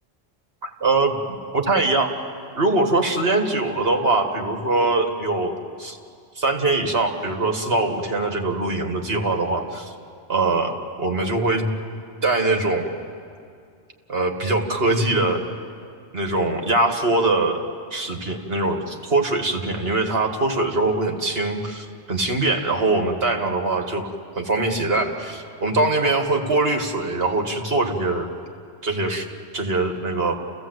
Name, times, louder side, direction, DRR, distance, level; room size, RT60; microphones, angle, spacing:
voice 1, 0.6-1.2 1.5-2.1 2.6-6.0 6.4-9.9 10.3-11.7 12.2-12.9 14.1-15.4 16.1-17.6 17.9-28.3 28.8-29.3 29.5-30.4, right 2 dB, 60° right, 3 dB, 1.9 m, -22 dB
29.0 x 16.0 x 8.0 m, 2.3 s
omnidirectional pair, 1.1 m